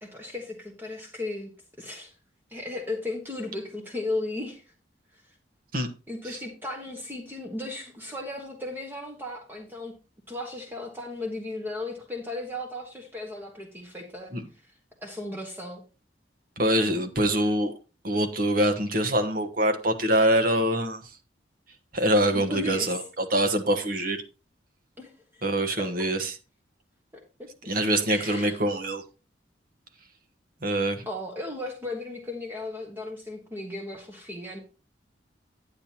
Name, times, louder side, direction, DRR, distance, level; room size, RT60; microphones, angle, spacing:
voice 1, 0.0-1.5 1.8-2.1 2.5-4.6 6.1-9.9 10.3-14.3 15.0-15.8 22.3-23.0 25.0-25.4 25.8-26.1 27.1-27.2 28.1-28.6 31.0-34.6, left 2 dB, 10° right, 1.4 m, -35 dB
voice 2, 16.6-17.7 18.0-21.0 21.9-24.2 25.4-26.3 27.7-29.0 30.6-31.0, right 1 dB, 50° right, 1.3 m, -24 dB
10.0 x 8.8 x 2.9 m
head